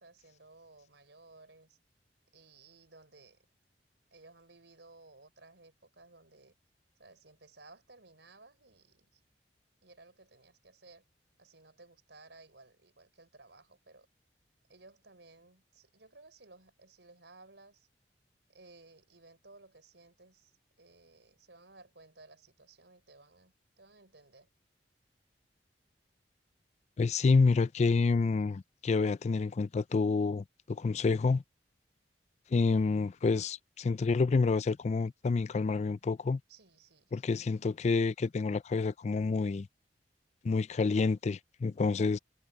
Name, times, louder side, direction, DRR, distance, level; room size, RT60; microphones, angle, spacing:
voice 1, 0.0-1.8 2.3-3.4 4.1-6.6 7.0-9.2 9.8-11.0 11.4-14.1 14.7-17.9 18.5-24.5 36.5-37.5, right 3 dB, 90° right, 4.3 m, -58 dB
voice 2, 27.0-31.4 32.5-36.4 37.1-39.7 40.4-42.2, left 4 dB, 40° left, 0.4 m, -28 dB
head